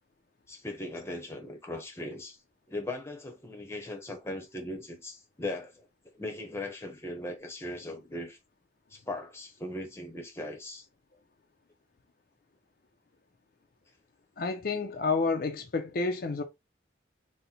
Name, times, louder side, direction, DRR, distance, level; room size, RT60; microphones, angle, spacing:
voice 1, 0.5-2.4 2.7-5.8 6.1-8.4 8.9-10.9, left 1 dB, 15° left, 0.8 m, -39 dB
voice 2, 14.4-16.4, left 4 dB, 55° left, 0.5 m, -29 dB
3.9 x 2.1 x 4.3 m
head